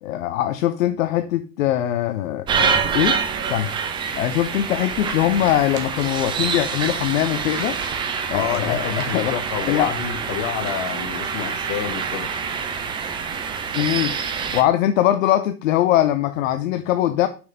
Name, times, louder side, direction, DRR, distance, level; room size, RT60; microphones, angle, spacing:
voice 1, 0.0-3.2 3.5-3.7 4.2-7.8 8.3-9.3 9.7-9.9 13.7-14.1 14.5-17.3, left 12 dB, 55° left, 0.8 m, -21 dB
sound 1, 2.5-14.6, right 6 dB, 10° right, 0.4 m, -26 dB
sound 2, 4.8-10.2, right 6 dB, 30° right, 1.6 m, -42 dB
voice 2, 8.3-12.3, left 9 dB, 40° left, 1.2 m, -28 dB
6.4 x 6.3 x 3.8 m
hypercardioid pair, 105°, 48 cm